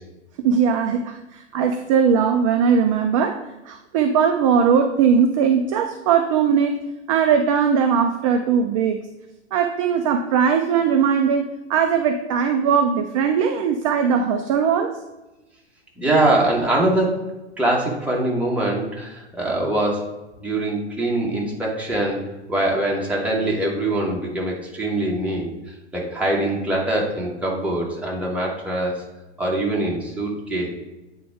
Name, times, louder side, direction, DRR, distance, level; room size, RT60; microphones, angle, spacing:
voice 1, 0.4-6.8 7.1-9.0 9.5-15.0, right 7 dB, 30° right, 6 dB, 0.4 m, -19 dB
voice 2, 16.0-17.2 17.6-20.1 20.4-22.2 22.5-25.5 25.9-29.0 29.4-30.7, right 1 dB, 5° right, -3 dB, 1.4 m, -23 dB
8.5 x 3.6 x 4.6 m, 1.0 s
figure-of-eight pair, 100°, 34 cm